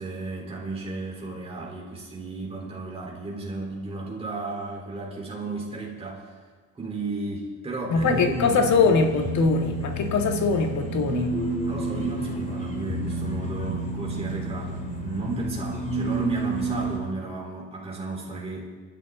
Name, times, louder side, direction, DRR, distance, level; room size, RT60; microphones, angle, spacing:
voice 1, 0.0-6.3 6.7-8.6 11.6-18.7, right 3 dB, 20° right, -3 dB, 3.9 m, -34 dB
voice 2, 7.9-11.3, left 4 dB, 60° left, 4 dB, 2.0 m, -22 dB
sound 1, 7.9-17.0, right 1 dB, 20° left, 2.7 m, -30 dB
27.5 x 11.5 x 3.9 m, 1.5 s
cardioid pair, 150°, 33 cm